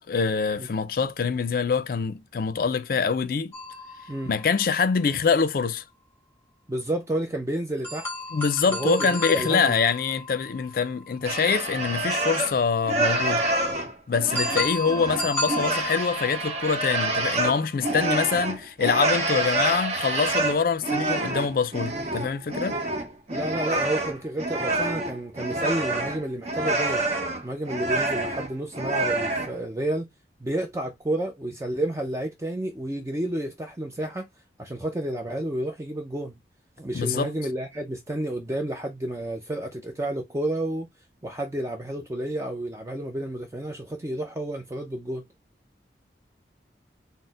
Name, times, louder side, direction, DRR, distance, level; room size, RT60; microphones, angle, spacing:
voice 1, 0.1-3.5 4.3-5.8 8.3-13.4 14.1-22.8 36.9-37.3, left 5 dB, 50° left, 0.4 m, -25 dB
sound 1, 3.5-5.3 7.8-11.7 14.3-17.8, left 1 dB, 10° left, 1.2 m, -34 dB
voice 2, 6.7-8.1 8.7-9.0 9.3-9.8 23.3-27.1 27.4-30.1 30.4-34.3 34.6-36.3 36.8-40.9 41.2-45.3, right 1 dB, 15° right, 0.4 m, -30 dB
sound 2, 11.2-12.6 12.8-29.5, right 2 dB, 35° right, 0.8 m, -27 dB
4.1 x 2.1 x 3.8 m
head